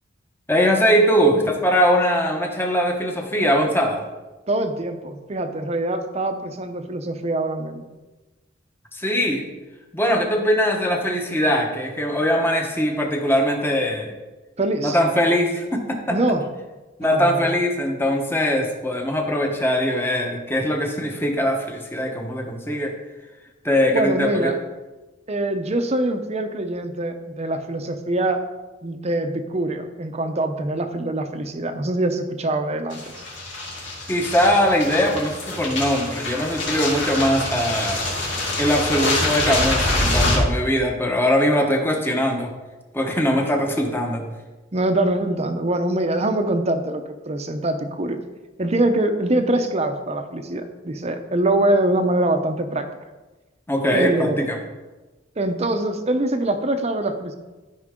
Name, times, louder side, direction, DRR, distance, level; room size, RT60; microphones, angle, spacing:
voice 1, 0.5-4.0 8.9-9.4 9.9-14.1 14.8-16.2 17.0-22.9 23.6-24.5 34.1-38.0 38.6-42.5 42.9-44.2 53.7-54.6, equal, 10° left, 2 dB, 1.1 m, -21 dB
voice 2, 4.5-7.8 14.6-15.0 16.1-16.4 17.0-17.5 23.9-24.6 25.3-28.4 28.8-33.0 44.7-48.2 48.6-52.9 53.9-54.5 55.4-57.4, right 1 dB, 35° right, 7 dB, 0.8 m, -24 dB
sound 1, 32.9-40.4, left 2 dB, 70° left, 2.7 m, -25 dB
13.5 x 5.4 x 3.7 m, 1.2 s
head